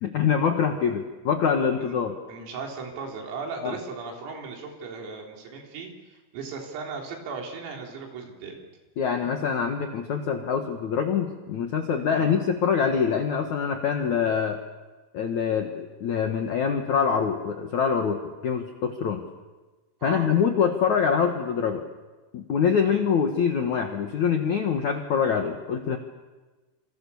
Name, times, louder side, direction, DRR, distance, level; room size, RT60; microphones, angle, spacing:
voice 1, 0.0-2.1 3.6-3.8 9.0-14.6 15.1-19.2 20.0-21.8 22.3-26.0, left 7 dB, 75° left, 4 dB, 1.7 m, -25 dB
voice 2, 2.3-8.6 12.1-12.4 20.0-20.3 22.9-23.0, right 4 dB, 90° right, 1 dB, 6.5 m, -37 dB
27.5 x 26.5 x 7.1 m, 1.2 s
omnidirectional pair, 5.8 m